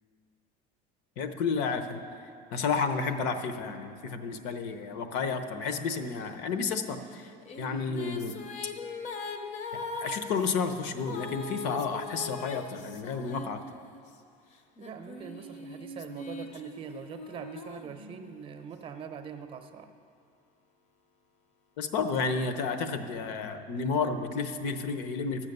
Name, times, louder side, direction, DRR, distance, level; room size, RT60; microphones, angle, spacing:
voice 1, 1.2-7.3 7.6-8.3 10.0-13.6 21.8-25.5, left 5 dB, 70° left, 8 dB, 0.9 m, -31 dB
sound 1, 7.2-14.1 14.8-18.5, left 3 dB, 40° left, 0.7 m, -41 dB
voice 2, 14.8-19.9, right 7 dB, 30° right, 7 dB, 0.7 m, -43 dB
12.5 x 7.5 x 6.7 m, 2.3 s
cardioid pair, 170°, 18 cm